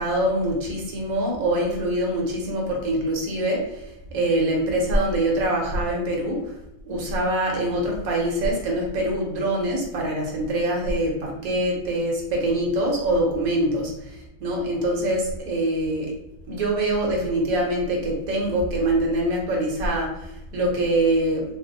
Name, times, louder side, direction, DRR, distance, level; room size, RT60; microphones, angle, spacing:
voice 1, 0.0-3.8 4.1-6.4 6.9-16.1 16.5-21.4, right 1 dB, 60° right, -1 dB, 1.0 m, -24 dB
3.3 x 2.0 x 3.9 m, 0.87 s
omnidirectional pair, 2.2 m